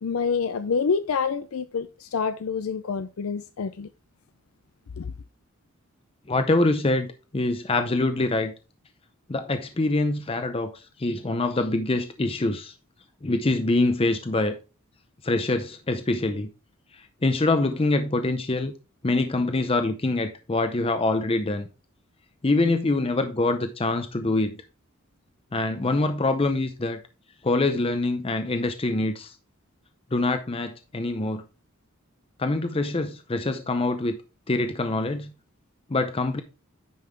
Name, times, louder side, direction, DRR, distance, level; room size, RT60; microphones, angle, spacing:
voice 1, 0.0-3.9 5.0-5.1, left 5 dB, 85° left, 0.5 m, -27 dB
voice 2, 6.3-8.5 9.3-12.7 13.2-14.6 15.2-16.5 16.9-18.7 19.0-21.7 22.4-24.6 25.5-27.0 27.4-29.3 30.1-31.4 32.4-34.2 34.5-35.3 35.9-36.4, left 2 dB, 25° left, 0.6 m, -25 dB
9.4 x 5.5 x 3.4 m
head